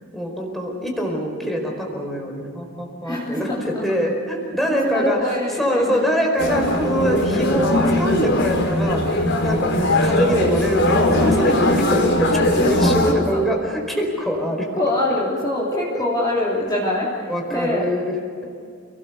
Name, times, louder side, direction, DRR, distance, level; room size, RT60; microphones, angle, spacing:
voice 1, 0.1-5.2 5.6-14.7 15.9-16.0 17.3-18.6, equal, ahead, 0 dB, 4.7 m, -24 dB
voice 2, 3.0-3.9 4.6-6.0 11.6-11.9 12.5-13.4 14.7-17.9, left 1 dB, 20° left, -6 dB, 3.5 m, -24 dB
sound 1, 6.4-13.1, left 1 dB, 50° left, 4.6 m, -20 dB
29.5 x 19.5 x 7.1 m, 2.3 s
head